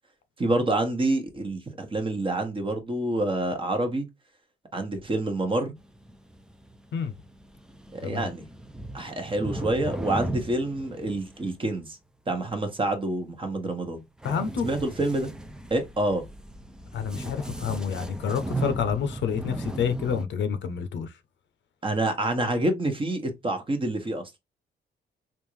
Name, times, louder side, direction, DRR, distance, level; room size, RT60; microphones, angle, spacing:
voice 1, 0.4-4.1 4.7-5.7 7.9-8.4 8.9-12.0 12.3-14.0 14.6-15.3 15.7-16.2 21.8-24.2, right 2 dB, 25° right, 1.1 m, -27 dB
sound 1, 5.8-11.8 14.2-20.3, right 2 dB, 5° right, 0.4 m, -37 dB
voice 2, 14.2-14.7 16.9-21.1, left 7 dB, 65° left, 0.7 m, -28 dB
3.6 x 2.5 x 3.1 m
cardioid pair, 90°, 20 cm